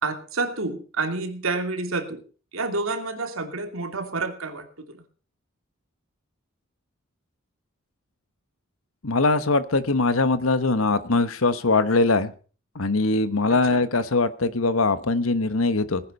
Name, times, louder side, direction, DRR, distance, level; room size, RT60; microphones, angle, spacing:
voice 1, 0.0-2.2 2.5-5.0 13.5-13.8, right 3 dB, 80° right, 6 dB, 2.6 m, -29 dB
voice 2, 9.0-12.3 12.7-16.0, left 3 dB, 80° left, 13 dB, 1.2 m, -22 dB
19.0 x 10.0 x 5.4 m, 0.40 s
head